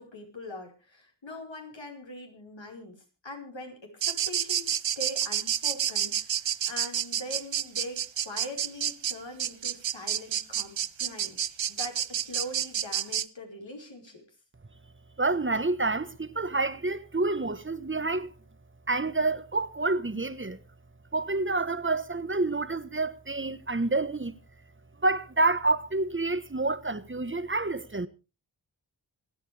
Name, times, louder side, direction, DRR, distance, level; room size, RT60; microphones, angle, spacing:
voice 1, 0.0-11.4 11.7-14.2, left 1 dB, 75° left, 5.1 m, -42 dB
sound 1, 4.0-13.3, right 9 dB, 75° right, 0.7 m, -29 dB
voice 2, 15.2-18.3 18.9-20.6 21.1-24.3 25.0-28.1, right 3 dB, 25° right, 1.3 m, -28 dB
27.0 x 9.2 x 3.4 m
cardioid pair, 45°, 45 cm